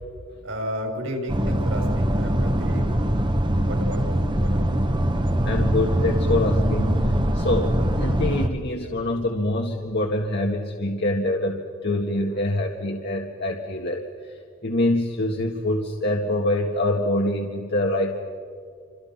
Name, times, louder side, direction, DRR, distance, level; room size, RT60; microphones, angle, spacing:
voice 1, 0.4-2.8 3.6-5.0, equal, 65° right, 2 dB, 6.3 m, -32 dB
sound 1, 1.3-8.5, right 1 dB, 20° right, 1.4 m, -22 dB
voice 2, 5.4-7.1 7.3-14.0 14.6-18.1, left 1 dB, 50° left, 1 dB, 1.8 m, -25 dB
29.5 x 26.5 x 5.9 m, 2.2 s
head